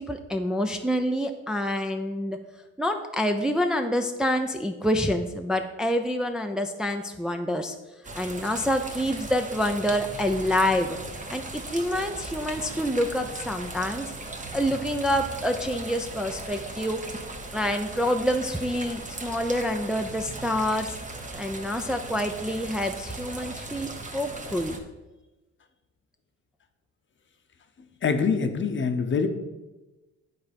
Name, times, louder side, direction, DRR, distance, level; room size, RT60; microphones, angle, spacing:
voice 1, 0.0-2.4 2.8-7.7 8.1-11.0 11.3-14.1 14.5-17.0 17.5-21.0 21.4-24.8, equal, ahead, 4 dB, 0.5 m, -27 dB
sound 1, 8.0-24.8, right 2 dB, 25° right, 1.1 m, -38 dB
voice 2, 28.0-29.3, left 5 dB, 40° left, 7 dB, 0.8 m, -24 dB
9.4 x 4.1 x 5.2 m, 1.1 s
cardioid pair, 90°, 30 cm